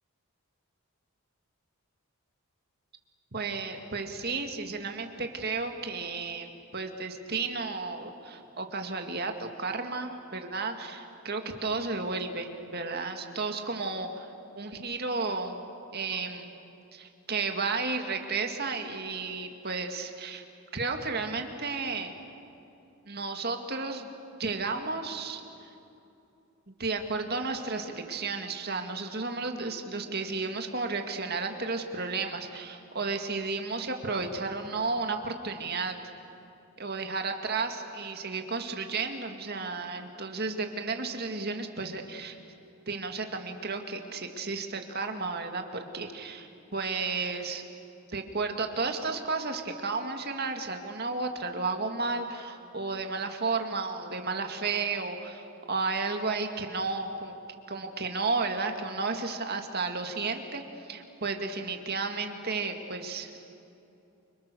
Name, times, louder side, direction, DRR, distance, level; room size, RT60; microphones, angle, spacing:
voice 1, 3.3-14.3 14.6-15.6 15.9-16.5 16.9-20.4 20.7-22.1 23.1-24.1 24.4-25.7 26.7-36.0 36.8-42.4 42.9-47.6 48.1-57.4 57.7-63.4, right 4 dB, 45° right, 5 dB, 2.2 m, -33 dB
29.5 x 25.5 x 6.9 m, 2.7 s
head